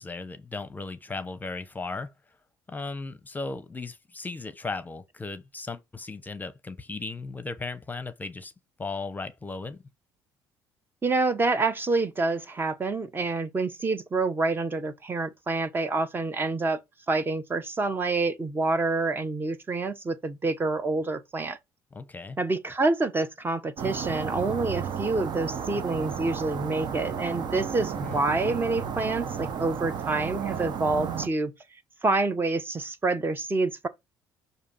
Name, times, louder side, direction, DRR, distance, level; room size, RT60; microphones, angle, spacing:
voice 1, 0.0-2.1 2.7-8.5 8.8-9.8 21.9-22.4 28.0-28.2, left 3 dB, 20° left, 0.8 m, -36 dB
voice 2, 11.0-16.8 17.1-21.6 22.4-31.5 32.0-33.9, right 3 dB, 25° right, 0.9 m, -27 dB
sound 1, 23.8-31.3, right 7 dB, 60° right, 0.9 m, -33 dB
6.5 x 2.8 x 5.5 m
supercardioid pair, 85°, 8 cm